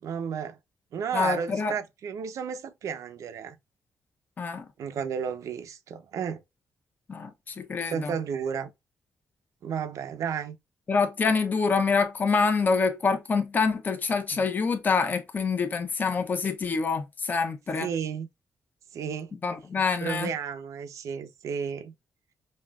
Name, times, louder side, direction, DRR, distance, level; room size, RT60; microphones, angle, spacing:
voice 1, 0.0-0.6 0.9-3.6 4.8-6.4 7.8-8.7 9.6-10.6 14.3-14.4 17.8-18.3 18.9-19.3 20.0-21.9, right 7 dB, 65° right, 0.7 m, -32 dB
voice 2, 1.1-1.7 4.4-4.7 7.1-8.1 10.9-17.9 19.4-20.3, left 4 dB, 30° left, 0.9 m, -26 dB
5.5 x 2.5 x 2.3 m
cardioid pair, 150°, 6 cm